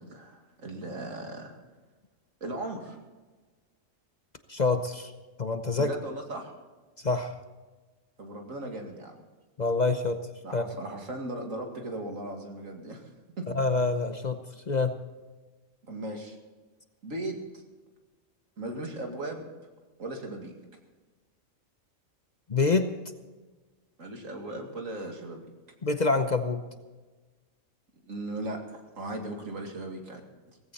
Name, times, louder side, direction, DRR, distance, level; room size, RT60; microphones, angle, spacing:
voice 1, 0.0-1.6 2.4-3.0 5.8-6.5 8.2-9.2 10.4-13.1 13.4-13.5 15.8-16.4 17.0-17.6 18.6-19.5 20.0-20.5 24.0-25.4 28.0-30.2, right 1 dB, 80° right, 2 dB, 2.6 m, -37 dB
voice 2, 4.5-5.1 5.4-5.9 7.0-7.3 9.6-10.2 10.5-10.6 13.5-14.4 14.7-15.0 22.5-22.9 25.8-26.6, left 3 dB, 40° left, 8 dB, 0.8 m, -26 dB
17.5 x 15.5 x 4.2 m, 1.3 s
omnidirectional pair, 1.4 m